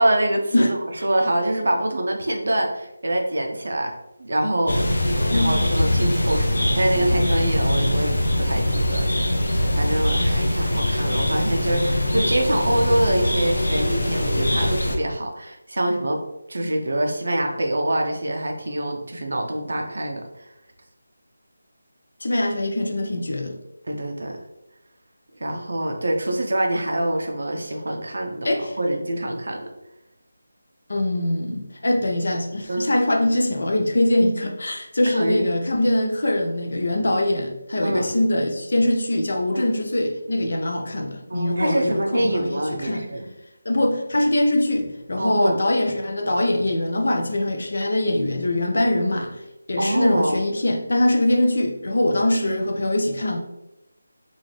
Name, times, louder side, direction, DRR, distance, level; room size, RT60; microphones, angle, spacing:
voice 1, 0.0-3.9 4.2-16.2 16.5-20.5 23.9-24.4 25.4-29.7 32.7-32.9 35.0-35.5 37.8-38.2 39.5-39.7 41.3-43.3 45.2-45.6 49.8-50.4, right 1 dB, 55° right, 0.6 m, -25 dB
sound 1, 4.7-15.0, left 1 dB, 85° left, 0.8 m, -22 dB
voice 2, 5.2-5.6 22.2-23.6 28.4-28.7 30.9-43.1 43.6-49.4 49.7-53.4, left 1 dB, 55° left, 0.5 m, -22 dB
3.8 x 2.5 x 3.2 m
figure-of-eight pair, 180°, 0 cm